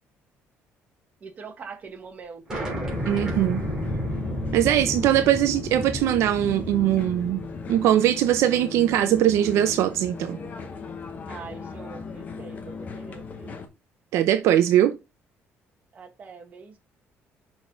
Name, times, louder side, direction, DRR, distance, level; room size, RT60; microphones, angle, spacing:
voice 1, 1.2-3.5 11.3-13.7 15.9-16.8, right 5 dB, 30° right, 1.4 m, -43 dB
sound 1, 2.5-7.8, equal, 15° right, 3.3 m, -32 dB
sound 2, 2.9-13.7, left 5 dB, 35° left, 1.1 m, -37 dB
voice 2, 3.1-3.6 4.5-7.4 7.7-10.4 14.1-14.9, right 12 dB, 75° right, 0.6 m, -21 dB
6.2 x 4.7 x 3.7 m
cardioid pair, 155°, 5 cm